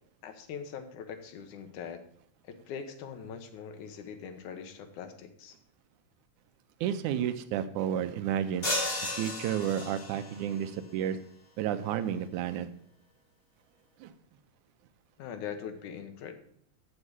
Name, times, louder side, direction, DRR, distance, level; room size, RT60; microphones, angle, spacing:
voice 1, 0.2-2.0 2.5-5.6 15.2-16.4, left 7 dB, 90° left, 7 dB, 2.6 m, -42 dB
voice 2, 6.8-8.7 9.2-11.2 11.6-12.7 14.0-14.1, right 9 dB, 85° right, 10 dB, 2.2 m, -31 dB
sound 1, 8.6-10.4, left 2 dB, 20° left, 2.1 m, -33 dB
7.5 x 7.3 x 8.0 m, 0.65 s
omnidirectional pair, 3.4 m